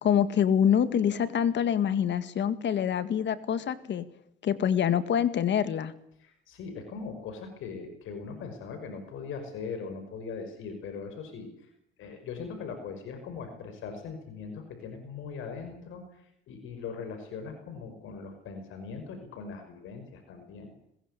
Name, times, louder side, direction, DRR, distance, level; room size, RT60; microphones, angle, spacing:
voice 1, 0.0-4.1 4.4-5.9, left 8 dB, 65° left, 13 dB, 2.0 m, -25 dB
voice 2, 6.2-11.5 12.0-20.7, left 5 dB, 85° left, 7 dB, 5.5 m, -40 dB
22.5 x 21.0 x 8.3 m, 0.74 s
cardioid pair, 90°, 20 cm